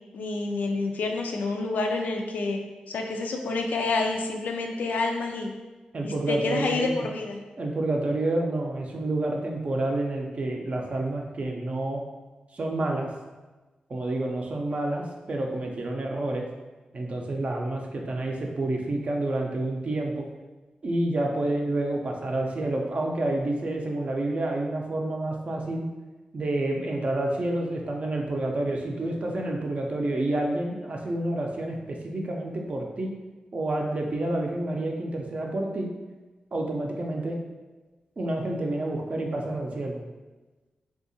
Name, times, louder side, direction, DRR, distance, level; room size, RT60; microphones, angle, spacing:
voice 1, 0.1-2.6 2.9-5.5 6.0-7.4, left 3 dB, 80° left, 2 dB, 0.3 m, -28 dB
voice 2, 5.9-7.1 7.6-12.0 12.5-13.1 13.9-16.5 16.9-20.3 20.8-25.8 26.3-33.1 33.5-35.9 36.5-37.4 38.2-40.0, right 2 dB, 50° right, 1 dB, 0.5 m, -29 dB
2.7 x 2.4 x 2.6 m, 1.2 s
cardioid pair, 60°, 3 cm